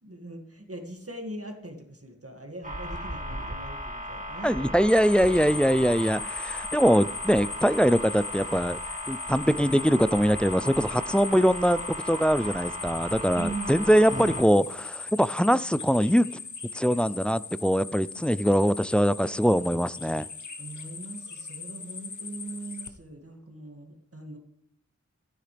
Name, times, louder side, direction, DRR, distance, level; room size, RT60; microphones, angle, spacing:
voice 1, 0.0-4.8 13.3-14.0 18.5-18.6 20.6-24.4, right 2 dB, 50° right, 3 dB, 2.2 m, -40 dB
sound 1, 2.6-14.4, equal, 25° right, 1.9 m, -37 dB
voice 2, 4.4-8.8 9.1-16.3 16.7-20.3, equal, 5° left, 17 dB, 0.3 m, -23 dB
sound 2, 4.9-22.9, left 5 dB, 75° left, 1.0 m, -39 dB
15.0 x 9.7 x 3.4 m, 0.70 s
wide cardioid pair, 45°, 30 cm